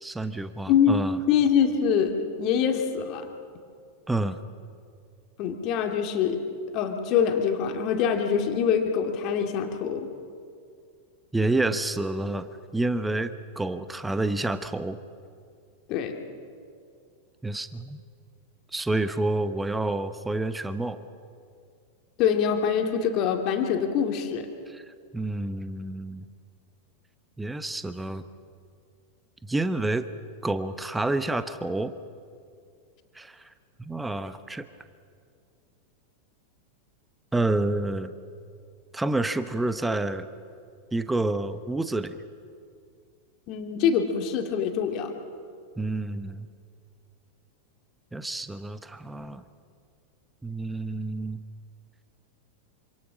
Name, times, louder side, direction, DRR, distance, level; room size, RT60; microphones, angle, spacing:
voice 1, 0.0-1.2 4.1-4.4 11.3-15.0 17.4-18.0 18.7-21.0 24.7-24.8 25.1-26.3 27.4-28.2 29.5-30.1 30.4-31.9 33.1-33.5 33.9-34.6 37.3-38.1 38.9-40.3 40.9-42.2 45.8-46.5 48.1-49.4 50.4-51.4, right 2 dB, 5° right, 12 dB, 1.0 m, -28 dB
voice 2, 1.3-2.1 2.4-3.3 5.4-6.4 6.7-10.1 15.9-16.2 22.2-24.5 43.5-45.1, left 7 dB, 40° left, 4 dB, 2.5 m, -24 dB
27.0 x 26.0 x 6.3 m, 2.3 s
figure-of-eight pair, 90°, 0 cm